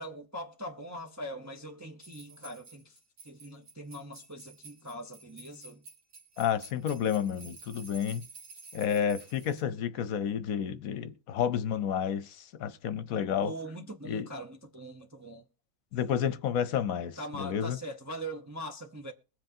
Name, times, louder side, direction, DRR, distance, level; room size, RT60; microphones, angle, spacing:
voice 1, 0.0-3.0 3.2-5.8 13.4-15.4 17.2-19.1, right 1 dB, 15° right, 0.5 m, -42 dB
sound 1, 2.0-9.6, right 3 dB, 75° right, 2.2 m, -51 dB
voice 2, 6.4-8.3 8.7-13.5 14.0-14.3 15.9-17.8, left 8 dB, 70° left, 1.1 m, -30 dB
21.5 x 7.8 x 2.7 m
omnidirectional pair, 1.6 m